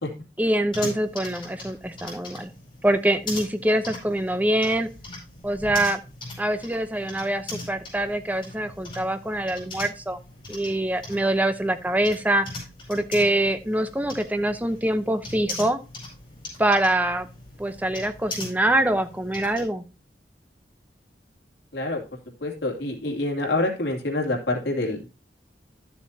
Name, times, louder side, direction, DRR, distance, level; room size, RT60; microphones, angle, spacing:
voice 1, 0.4-2.5 2.8-4.9 5.4-6.0 6.4-10.2 10.5-12.5 12.9-15.8 16.6-17.3 17.6-19.8, right 1 dB, 10° right, 9 dB, 0.7 m, -24 dB
sound 1, 0.7-19.7, left 2 dB, 25° left, 5.0 m, -40 dB
voice 2, 22.4-25.1, left 2 dB, 75° left, 0 dB, 2.6 m, -26 dB
12.5 x 7.2 x 2.7 m, 0.30 s
head